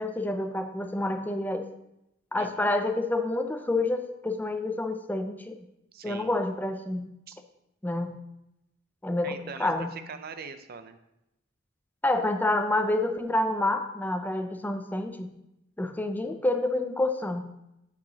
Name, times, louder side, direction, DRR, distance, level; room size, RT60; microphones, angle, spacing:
voice 1, 0.0-1.7 2.3-5.6 6.0-7.1 7.8-8.1 9.0-9.9 12.0-15.3 15.8-17.4, left 2 dB, 10° left, 7 dB, 0.4 m, -28 dB
voice 2, 2.3-2.7 5.9-6.3 7.3-7.4 9.2-11.0, right 5 dB, 50° right, 10 dB, 0.5 m, -42 dB
11.0 x 4.8 x 2.8 m, 0.87 s
head